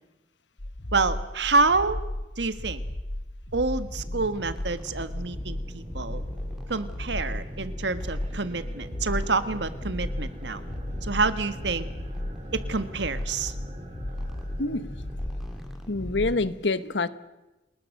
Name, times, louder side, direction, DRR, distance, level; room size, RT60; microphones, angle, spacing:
sound 1, 0.6-16.4, left 1 dB, 50° left, 1.2 m, -35 dB
voice 1, 0.9-2.0 2.4-2.8 3.5-6.2 6.7-10.6 11.0-11.9 12.5-13.5, right 3 dB, 75° right, 11 dB, 1.5 m, -27 dB
sound 2, 4.0-16.4, equal, ahead, 3.6 m, -44 dB
sound 3, 5.2-15.7, equal, 35° right, 3.8 m, -46 dB
voice 2, 14.6-14.9 15.9-17.1, left 3 dB, 80° left, 14 dB, 1.2 m, -26 dB
29.0 x 20.0 x 6.6 m, 1.0 s
head